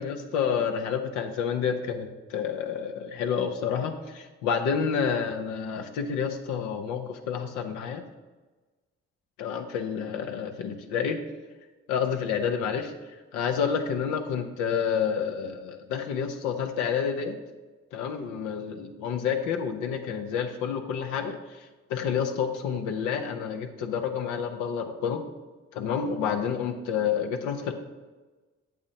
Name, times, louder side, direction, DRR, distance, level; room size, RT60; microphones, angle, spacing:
voice 1, 0.0-8.0 9.4-11.2 11.9-12.9 13.3-17.4 17.9-21.4 21.9-25.2 25.7-27.7, left 7 dB, 85° left, 5 dB, 0.7 m, -29 dB
8.4 x 7.1 x 2.8 m, 1.2 s
hypercardioid pair, 50°, 29 cm